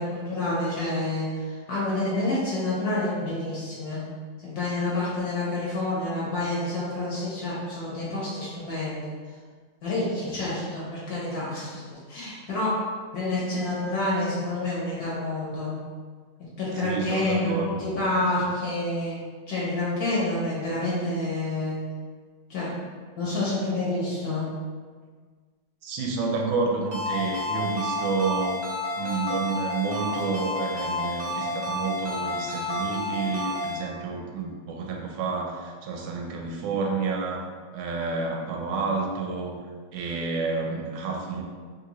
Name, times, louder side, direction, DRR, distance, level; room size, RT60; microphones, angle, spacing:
voice 1, 0.0-4.0 4.4-9.1 9.8-12.8 13.1-15.7 16.6-19.2 19.5-21.8 22.5-22.7 23.2-24.4, left 2 dB, 60° left, -7 dB, 1.1 m, -28 dB
voice 2, 16.8-18.2 25.8-28.7 29.0-37.5 37.7-39.6 39.9-41.4, right 4 dB, 85° right, 1 dB, 1.4 m, -29 dB
Ringtone, 26.9-33.8, left 2 dB, 70° right, 0.6 m, -30 dB
sound 1, 29.0-29.6 30.1-30.7 31.2-31.8 32.3-33.8, equal, 80° left, 0.5 m, -45 dB
3.7 x 2.5 x 2.9 m, 1.5 s
omnidirectional pair, 2.2 m